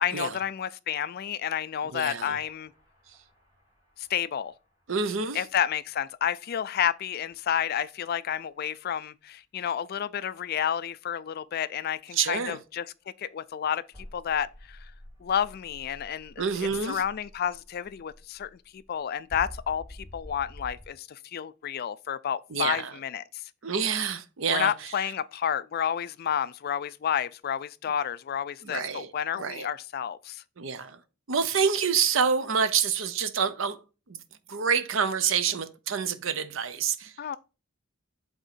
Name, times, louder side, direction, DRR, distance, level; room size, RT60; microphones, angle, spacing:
voice 1, 0.0-2.7 4.0-4.5 5.3-12.9 13.2-13.8 14.1-14.9 15.2-23.4 24.5-30.4 37.2-37.4, left 9 dB, 50° left, 0.3 m, -30 dB
voice 2, 1.8-2.4 4.9-5.4 12.1-12.6 16.4-17.0 22.5-22.9 23.6-24.9 28.6-29.7 30.6-31.0 31.3-33.8 34.1-34.2 34.5-37.1, right 6 dB, 70° right, 0.7 m, -27 dB
sound 1, 2.2-4.8 7.3-7.4 13.9-20.9, left 1 dB, 15° right, 2.4 m, -48 dB
8.1 x 3.6 x 4.1 m
head